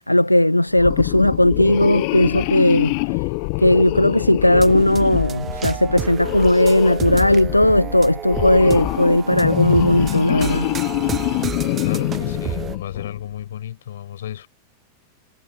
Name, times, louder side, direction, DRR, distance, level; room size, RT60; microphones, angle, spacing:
voice 1, 0.1-3.2 3.6-10.7, left 1 dB, 85° left, 1.0 m, -17 dB
sound 1, 0.7-13.2, left 40 dB or more, 45° left, 0.6 m, -25 dB
sound 2, 4.5-12.8, right 8 dB, 25° right, 0.8 m, -31 dB
voice 2, 11.8-14.5, left 11 dB, 60° left, 6.4 m, -32 dB
figure-of-eight pair, 90°, 0 cm